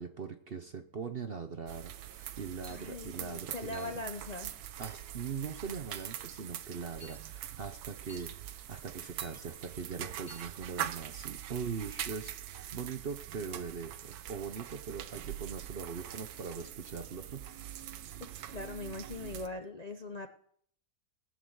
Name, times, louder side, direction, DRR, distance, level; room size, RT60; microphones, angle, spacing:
voice 1, 0.0-4.0 4.8-17.4, right 6 dB, 45° right, 8 dB, 0.8 m, -41 dB
sound 1, 1.7-19.5, right 11 dB, 70° right, 1.2 m, -43 dB
sound 2, 2.6-2.9 3.7-4.0 4.8-5.1 5.9-6.2 7.0-7.2 8.1-8.3 9.2-9.4 10.3-10.5, left 1 dB, 10° left, 1.9 m, -54 dB
voice 2, 2.7-4.6 18.2-20.3, left 2 dB, 40° left, 6 dB, 0.6 m, -41 dB
18.5 x 6.7 x 7.9 m, 0.64 s
omnidirectional pair, 1.8 m